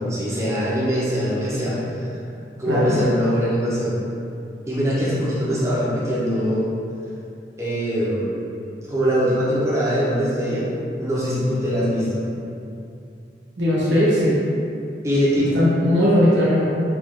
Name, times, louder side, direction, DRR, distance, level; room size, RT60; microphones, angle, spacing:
voice 1, 0.1-2.1 2.6-4.0 4.7-6.7 7.6-8.4 8.9-10.7 11.0-12.2 15.0-15.5, equal, 15° right, -8 dB, 0.7 m, -22 dB
voice 2, 2.7-3.0 13.6-14.4 15.5-16.6, left 1 dB, 85° right, -8 dB, 1.1 m, -18 dB
3.2 x 2.5 x 3.6 m, 2.6 s
head